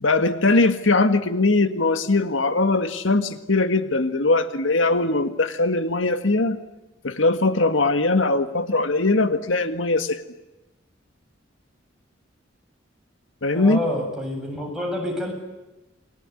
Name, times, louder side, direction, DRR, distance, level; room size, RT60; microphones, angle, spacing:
voice 1, 0.0-6.6 7.0-10.2 13.4-13.8, left 2 dB, 75° left, 10 dB, 1.8 m, -21 dB
voice 2, 13.5-15.3, left 1 dB, 5° right, -1 dB, 7.8 m, -28 dB
29.0 x 20.5 x 9.8 m, 1.0 s
head